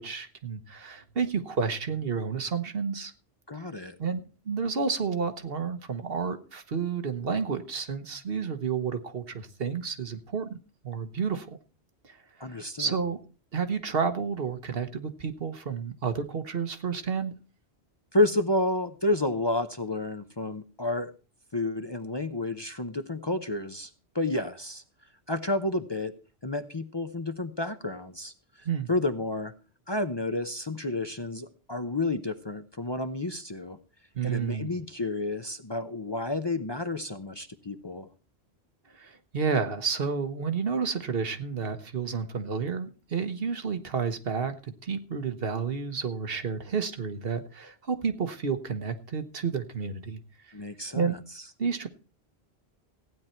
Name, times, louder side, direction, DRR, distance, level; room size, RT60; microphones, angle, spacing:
voice 1, 0.0-3.1 4.0-10.6 10.8-11.6 12.0-13.2 13.5-17.3 28.6-28.9 34.1-34.7 38.9-50.2 50.9-51.2 51.6-51.9, right 6 dB, 65° right, 8 dB, 1.4 m, -31 dB
voice 2, 3.5-4.0 12.4-13.0 18.1-21.1 21.5-24.8 25.3-26.1 26.4-28.3 28.9-29.5 29.9-33.8 34.2-38.1 50.5-51.2, left 2 dB, 30° left, 8 dB, 0.7 m, -30 dB
15.5 x 9.6 x 4.4 m, 0.35 s
omnidirectional pair, 1.1 m